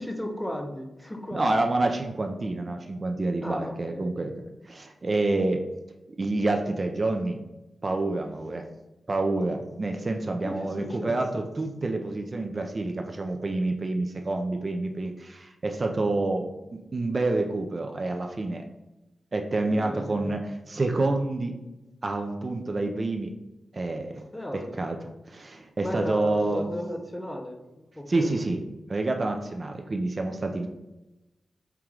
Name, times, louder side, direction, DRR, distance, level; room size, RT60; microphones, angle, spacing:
voice 1, 0.0-1.5 3.4-4.3 10.4-11.4 19.7-20.3 24.3-24.7 25.8-28.4, left 1 dB, 10° left, 3 dB, 0.6 m, -35 dB
voice 2, 1.3-4.3 4.7-5.6 6.2-7.4 7.8-8.6 9.1-18.6 19.3-20.4 20.7-21.5 22.0-23.3 23.7-24.2 24.5-25.0 25.3-26.7 28.1-28.6 28.9-30.7, right 2 dB, 35° right, 4 dB, 0.4 m, -28 dB
4.6 x 3.0 x 3.7 m, 1.0 s
wide cardioid pair, 120°, 0 cm